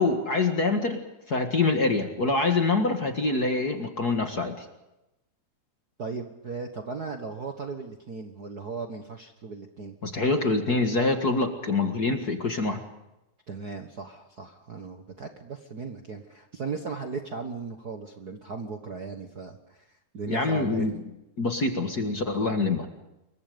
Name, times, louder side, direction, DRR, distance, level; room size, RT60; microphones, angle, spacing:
voice 1, 0.0-4.7 10.0-12.8 20.3-20.9 21.4-22.9, left 3 dB, 35° left, 5 dB, 1.9 m, -25 dB
voice 2, 6.0-10.0 13.5-19.9 20.1-20.9, right 4 dB, 45° right, 5 dB, 1.4 m, -37 dB
27.5 x 23.0 x 5.2 m, 0.93 s
omnidirectional pair, 3.4 m